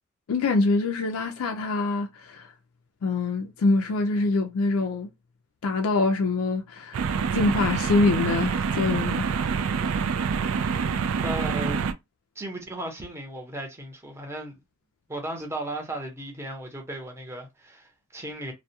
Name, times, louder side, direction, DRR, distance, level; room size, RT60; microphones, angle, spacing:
voice 1, 0.3-2.5 3.0-5.1 5.6-7.0 7.3-9.4, left 3 dB, 75° left, 0.4 m, -25 dB
sound 1, 6.9-11.9, right 6 dB, 70° right, 0.3 m, -26 dB
voice 2, 11.2-11.9 12.4-14.6 15.1-18.5, right 1 dB, 15° right, 0.7 m, -35 dB
2.2 x 2.1 x 2.7 m
head